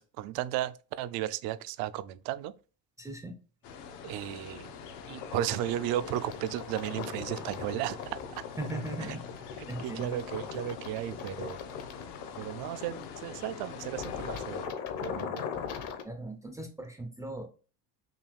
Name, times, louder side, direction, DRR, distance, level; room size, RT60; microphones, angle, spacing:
voice 1, 0.2-2.5 4.0-4.7 5.1-8.0 9.8-11.6 12.4-15.5, right 12 dB, 70° right, 0.5 m, -34 dB
voice 2, 3.0-3.4 8.6-9.2 9.7-10.2 16.0-17.5, right 2 dB, 10° right, 0.4 m, -38 dB
sound 1, 3.6-14.7, left 6 dB, 80° left, 1.0 m, -46 dB
sound 2, 5.1-16.0, left 7 dB, 55° left, 0.8 m, -40 dB
5.7 x 2.3 x 3.4 m
cardioid pair, 175°, 38 cm